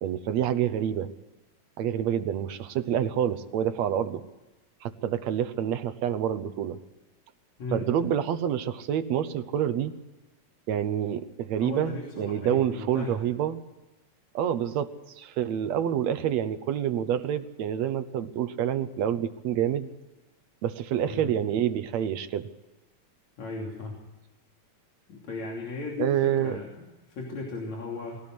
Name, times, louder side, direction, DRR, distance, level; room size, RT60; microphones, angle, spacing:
voice 1, 0.0-1.1 1.8-4.2 4.8-6.8 7.7-9.9 10.7-13.6 14.3-19.9 20.6-22.5 26.0-26.6, right 10 dB, 70° right, 11 dB, 2.2 m, -27 dB
voice 2, 11.6-13.2 21.1-21.3 23.4-23.9 25.1-28.2, left 3 dB, 70° left, -1 dB, 4.3 m, -36 dB
21.5 x 17.0 x 7.8 m, 1.1 s
omnidirectional pair, 3.3 m